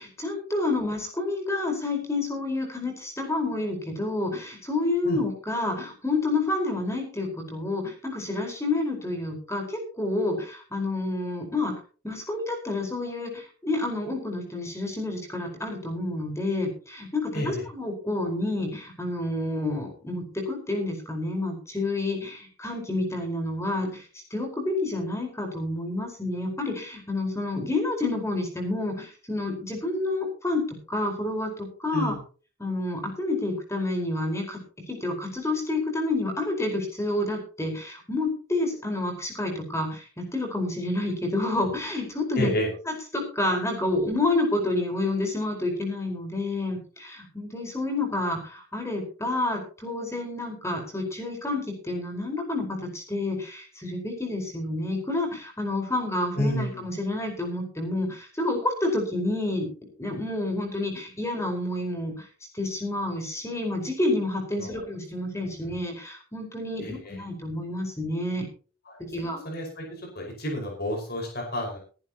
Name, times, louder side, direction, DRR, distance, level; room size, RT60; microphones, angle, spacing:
voice 1, 0.0-11.7 12.0-32.1 32.6-34.6 34.9-42.5 42.9-59.7 60.0-62.3 62.5-68.4 69.0-69.4, left 2 dB, 15° left, 3 dB, 4.7 m, -29 dB
voice 2, 42.4-42.7 56.4-56.8 64.6-64.9 66.8-67.2 68.9-69.0 69.4-69.8 70.2-71.8, equal, 50° left, 0 dB, 5.2 m, -30 dB
22.5 x 11.0 x 3.0 m, 0.38 s
head